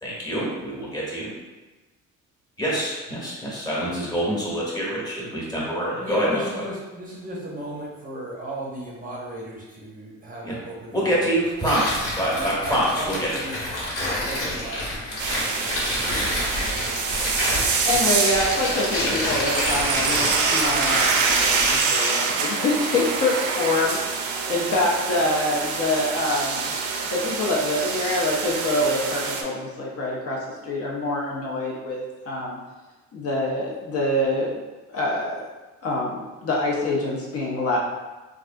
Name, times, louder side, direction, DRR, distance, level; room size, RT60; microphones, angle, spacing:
voice 1, 0.0-1.2 2.6-6.6 10.4-10.6 10.9-13.4, equal, 15° left, -6 dB, 1.0 m, -26 dB
voice 2, 6.0-11.1 11.6-11.7 12.3-16.5, right 1 dB, 30° right, -4 dB, 0.6 m, -36 dB
Tearing, 11.6-21.8, left 1 dB, 85° left, 1.4 m, -28 dB
sound 1, 15.2-29.4, right 5 dB, 80° right, 0.5 m, -25 dB
voice 3, 17.8-26.7 27.0-32.6 33.1-34.6 34.9-35.4 35.8-37.8, left 2 dB, 50° left, -3 dB, 0.6 m, -25 dB
3.3 x 2.4 x 2.5 m, 1.2 s
cardioid pair, 120°, 30 cm